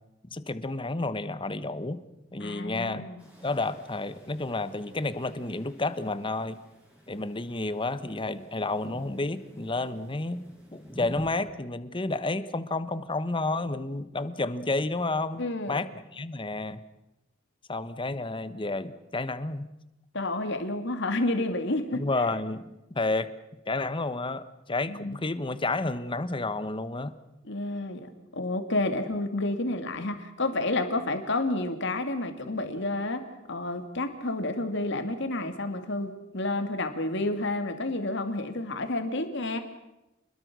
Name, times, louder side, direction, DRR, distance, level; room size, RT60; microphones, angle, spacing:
voice 1, 0.3-2.0 2.3-3.0 3.4-6.6 7.1-10.5 10.7-16.8 17.7-19.7 21.9-22.7 22.9-23.3 23.7-24.4 24.7-27.2, left 2 dB, 25° left, 13 dB, 1.2 m, -31 dB
voice 2, 2.4-3.2 15.4-15.8 20.1-22.0 24.9-25.2 27.4-33.2 33.5-39.6, left 2 dB, 65° left, 7 dB, 2.7 m, -30 dB
sound 1, 3.2-11.5, equal, 10° right, 7.0 m, -49 dB
28.0 x 21.5 x 6.3 m, 0.95 s
head